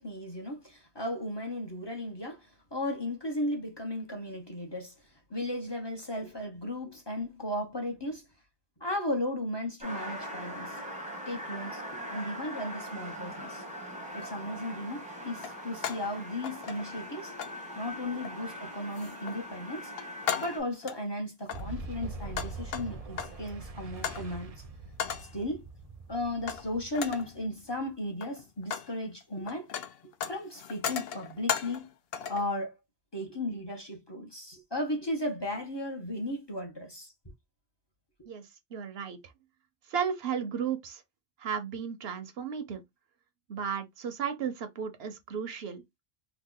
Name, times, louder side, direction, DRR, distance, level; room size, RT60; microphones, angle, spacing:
voice 1, 0.0-4.9 5.3-8.2 8.8-10.8 11.3-13.6 14.1-17.3 17.8-19.9 20.4-24.6 25.3-25.6 26.1-29.7 30.3-31.9 32.3-32.7 33.1-37.1, left 1 dB, 25° left, 0.8 m, -35 dB
sound 1, 9.8-20.6, equal, 10° right, 0.8 m, -41 dB
sound 2, 14.1-14.3 15.4-16.1 16.4-17.1 17.4-17.6 18.2-18.5 18.9-19.4 19.8-21.0 21.4-23.5 24.0-24.3 25.0-25.4 26.5-26.7 26.9-27.3 28.0-28.9 29.2-31.9 32.1-32.5, left 8 dB, 75° left, 0.8 m, -36 dB
Boom, 21.5-28.1, right 3 dB, 45° right, 0.5 m, -43 dB
voice 2, 38.7-39.2 39.9-41.0 41.4-42.8 43.5-45.8, right 7 dB, 80° right, 1.0 m, -34 dB
3.0 x 2.2 x 3.8 m
omnidirectional pair, 1.0 m